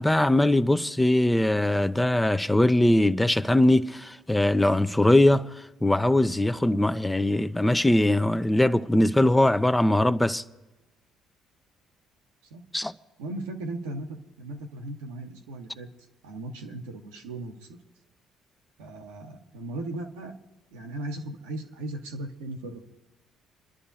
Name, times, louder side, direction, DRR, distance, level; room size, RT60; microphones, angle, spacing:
voice 1, 0.0-10.4 12.7-12.9, left 1 dB, 10° left, 0.7 m, -21 dB
voice 2, 13.2-15.9 16.2-17.8 18.8-20.3 20.7-22.8, right 2 dB, 80° right, 1.2 m, -37 dB
29.0 x 11.0 x 2.8 m
hypercardioid pair, 50°, 0 cm